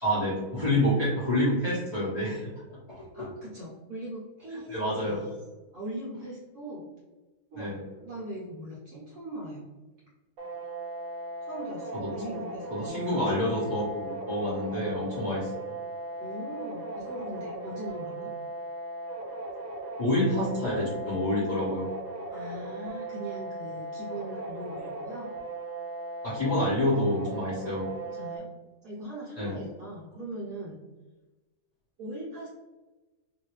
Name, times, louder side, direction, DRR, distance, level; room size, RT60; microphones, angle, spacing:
voice 1, 0.0-2.4 2.9-3.3 4.7-5.3 7.5-7.8 11.9-12.4 12.7-15.5 20.0-21.9 26.2-27.9 29.4-29.6, left 1 dB, 30° left, -10 dB, 0.7 m, -28 dB
voice 2, 3.1-4.7 5.1-5.3 5.7-6.9 7.5-7.7 8.0-9.7 11.4-13.3 16.2-18.3 22.3-25.3 28.0-28.5 28.8-30.8 32.0-32.5, right 1 dB, 60° right, -7 dB, 1.1 m, -40 dB
sound 1, 10.4-28.4, right 2 dB, 80° right, 1.4 m, -38 dB
3.1 x 2.7 x 3.0 m, 1.2 s
omnidirectional pair, 2.2 m